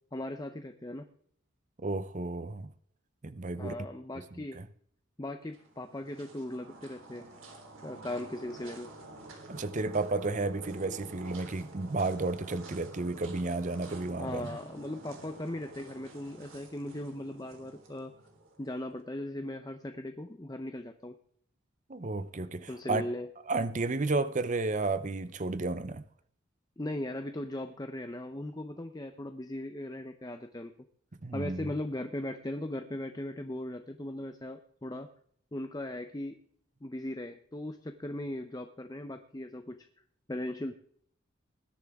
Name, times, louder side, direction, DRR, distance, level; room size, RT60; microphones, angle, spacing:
voice 1, 0.1-1.1 3.6-4.6 5.2-7.3 7.8-8.9 14.2-18.1 18.6-21.1 22.7-23.3 26.8-30.7 31.3-35.1 35.5-36.4 36.8-39.9 40.3-40.7, left 1 dB, 20° left, 0.7 m, -38 dB
voice 2, 1.8-2.7 3.2-3.7 4.4-4.6 9.5-14.5 21.9-23.0 23.5-26.0 31.2-31.7, right 3 dB, 40° right, 0.6 m, -32 dB
sound 1, 5.5-18.8, right 2 dB, 85° right, 3.5 m, -49 dB
20.5 x 10.5 x 3.6 m
head